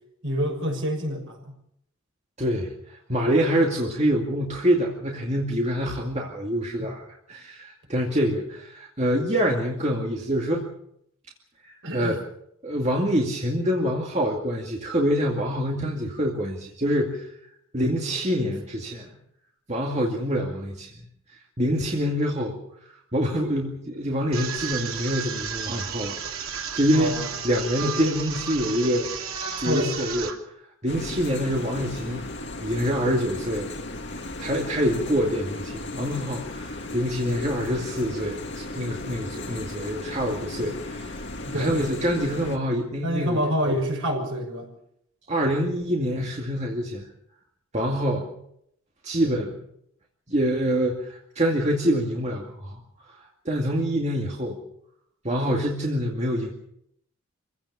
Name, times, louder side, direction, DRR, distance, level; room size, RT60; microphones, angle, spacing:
voice 1, 0.2-1.5 6.8-6.9 11.8-12.1 26.9-27.3 29.6-29.9 41.5-41.7 43.0-44.7, equal, 65° right, 2 dB, 6.8 m, -27 dB
voice 2, 2.4-2.7 3.1-10.7 11.6-12.2 12.6-17.3 17.7-19.1 19.7-20.9 21.6-22.6 23.1-29.1 29.6-30.3 30.8-32.3 32.6-33.7 34.4-41.2 41.5-43.8 45.3-47.0 47.7-48.3 49.0-49.6 50.3-52.8 53.5-54.6 55.2-56.5, equal, 30° right, -1 dB, 2.3 m, -26 dB
sound 1, 24.3-30.3, right 6 dB, 85° right, 3.2 m, -33 dB
sound 2, 30.9-42.6, left 2 dB, 55° left, 2.2 m, -36 dB
26.5 x 16.0 x 7.1 m, 0.73 s
head